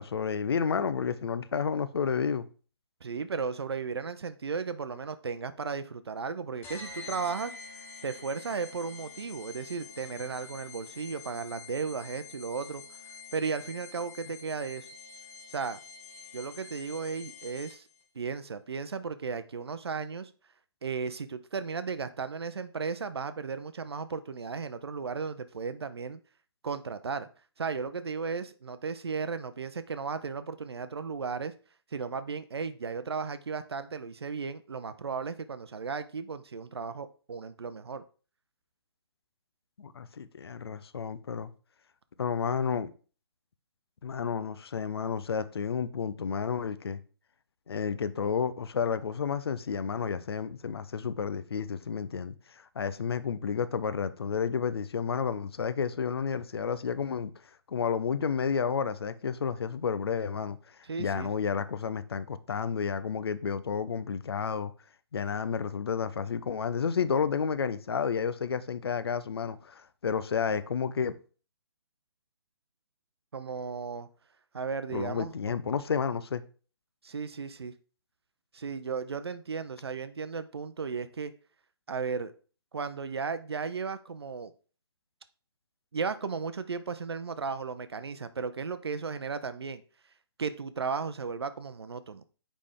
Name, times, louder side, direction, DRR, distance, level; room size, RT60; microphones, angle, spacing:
voice 1, 0.0-2.5 39.8-41.5 42.2-42.9 44.0-47.0 47.7-57.3 57.7-64.7 65.1-71.1 74.9-76.4, left 6 dB, 70° left, 0.6 m, -31 dB
voice 2, 3.0-7.5 8.0-12.8 13.3-14.9 15.5-15.8 16.3-17.9 18.1-20.3 20.8-26.2 26.6-27.3 27.6-31.5 31.9-38.0 60.8-61.3 73.3-74.1 74.5-75.6 77.0-77.7 78.5-81.3 81.9-82.3 82.7-84.5 85.9-89.8 90.4-92.2, right 5 dB, 75° right, 0.5 m, -35 dB
sound 1, 6.6-18.0, left 5 dB, 15° left, 1.0 m, -47 dB
6.6 x 5.0 x 3.6 m
figure-of-eight pair, 130°, 13 cm